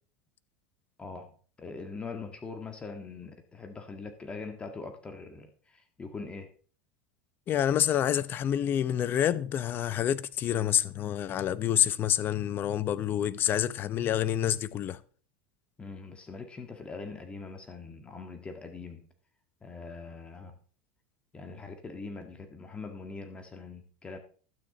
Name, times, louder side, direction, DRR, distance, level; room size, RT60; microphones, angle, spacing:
voice 1, 1.0-6.5 15.8-19.0 19.6-20.5 21.3-24.2, left 4 dB, 20° left, 1.7 m, -42 dB
voice 2, 7.5-15.0, left 10 dB, 40° left, 0.8 m, -28 dB
12.5 x 9.1 x 4.0 m
hypercardioid pair, 105°, 5 cm